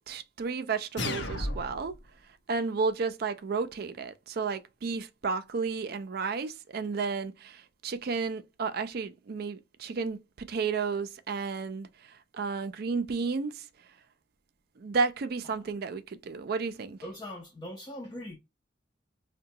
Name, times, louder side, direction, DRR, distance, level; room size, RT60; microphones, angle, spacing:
voice 1, 0.1-1.9 2.5-13.7 14.8-17.0, right 4 dB, 55° right, 0.4 m, -32 dB
sound 1, 1.0-2.0, left 1 dB, 75° left, 0.7 m, -33 dB
voice 2, 17.0-18.4, left 1 dB, 20° left, 0.5 m, -41 dB
3.8 x 2.2 x 2.7 m
head